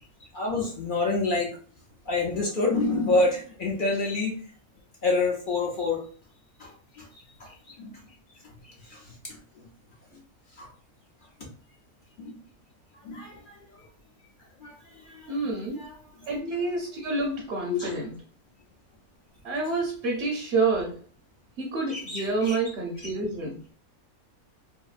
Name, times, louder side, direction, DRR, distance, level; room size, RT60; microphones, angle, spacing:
voice 1, 0.3-1.5 2.1-4.4 5.0-6.0 6.6-6.7 7.0-7.1 7.4-7.9 8.6-9.1 10.6-10.7 12.2-12.3 13.0-13.4 14.6-16.0 17.7-18.1 21.9-22.6, left 3 dB, 55° left, -2 dB, 0.6 m, -28 dB
voice 2, 15.3-15.8 16.3-18.1 19.4-20.9 21.6-23.6, right 3 dB, 60° right, -1 dB, 0.7 m, -28 dB
2.8 x 2.6 x 2.4 m, 0.42 s
omnidirectional pair, 1.6 m